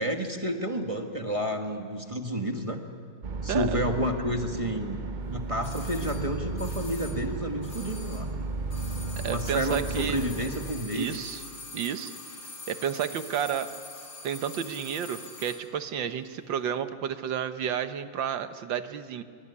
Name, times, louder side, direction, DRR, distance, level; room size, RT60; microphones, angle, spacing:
voice 1, 0.0-2.8 3.4-5.0 5.3-8.3 9.2-11.2, equal, 20° right, 3 dB, 1.7 m, -30 dB
sound 1, 3.2-10.7, right 3 dB, 50° right, 0.5 m, -34 dB
sound 2, 5.6-8.4 8.6-15.7 15.9-16.0, left 2 dB, 85° left, 4.7 m, -44 dB
voice 2, 9.2-10.2 10.9-11.4 11.7-12.1 12.7-13.7 14.2-19.2, right 8 dB, 85° right, 10 dB, 1.8 m, -31 dB
24.5 x 23.0 x 9.8 m, 2.2 s
omnidirectional pair, 2.0 m